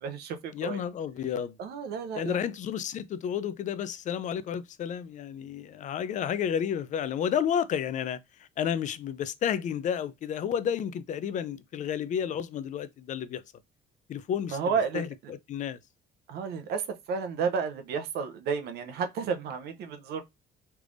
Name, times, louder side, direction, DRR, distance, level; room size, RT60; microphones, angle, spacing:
voice 1, 0.0-0.8 1.6-2.4 14.5-15.1 16.3-16.8 17.1-20.2, right 6 dB, 70° right, 0.7 m, -31 dB
voice 2, 0.5-1.6 2.1-8.2 8.6-13.4 14.1-14.6 14.9-15.8, left 8 dB, 50° left, 0.4 m, -31 dB
3.3 x 3.3 x 2.5 m
cardioid pair, 110°, 17 cm